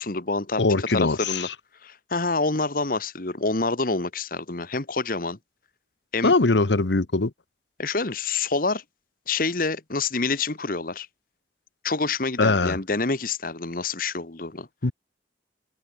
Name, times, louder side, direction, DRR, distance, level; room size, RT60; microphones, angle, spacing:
voice 1, 0.0-1.5 1.8-5.4 6.1-6.3 7.8-8.8 9.3-11.1 11.8-14.7, left 3 dB, 50° left, 1.6 m, -27 dB
voice 2, 0.6-1.5 6.2-7.3 12.4-12.8 14.8-14.9, left 3 dB, 90° left, 1.1 m, -21 dB
head